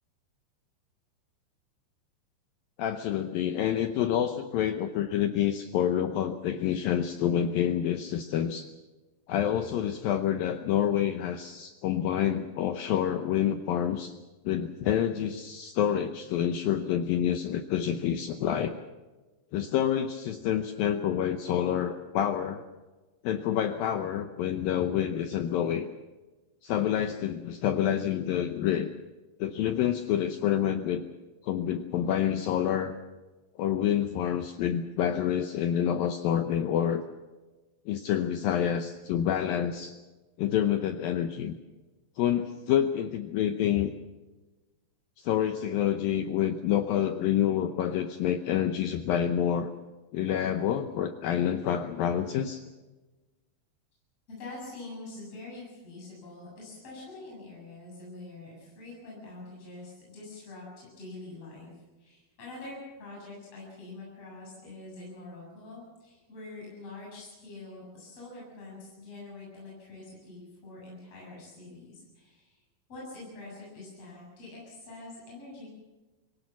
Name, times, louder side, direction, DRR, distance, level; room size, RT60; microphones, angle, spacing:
voice 1, 2.8-8.7 9.3-14.1 14.5-18.7 19.5-22.6 23.2-25.9 26.6-28.9 29.4-31.0 31.4-32.9 33.6-37.0 37.9-39.9 40.4-41.6 42.2-43.9 45.2-49.7 50.1-52.6, left 10 dB, 75° left, 8 dB, 2.1 m, -28 dB
voice 2, 54.3-72.6 72.9-75.7, left 2 dB, 35° left, -4 dB, 8.5 m, -45 dB
24.5 x 17.5 x 7.3 m, 1.2 s
omnidirectional pair, 5.1 m